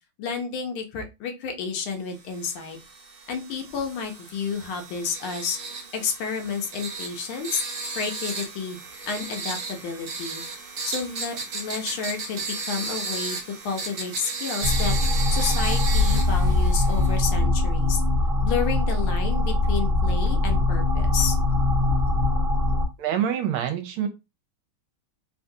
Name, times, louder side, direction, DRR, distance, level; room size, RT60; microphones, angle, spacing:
voice 1, 0.2-2.8 3.3-5.6 5.9-7.6 7.9-8.8 9.1-10.4 10.8-13.4 13.6-14.9 15.3-18.0 18.4-21.4, left 6 dB, 75° left, 4 dB, 1.5 m, -30 dB
sound 1, 2.3-17.2, right 4 dB, 60° right, 1.0 m, -35 dB
sound 2, 14.6-22.9, left 2 dB, 35° right, 0.9 m, -22 dB
voice 2, 23.0-24.1, right 9 dB, 80° right, 7 dB, 1.5 m, -26 dB
3.8 x 2.3 x 2.7 m, 0.25 s
omnidirectional pair, 2.4 m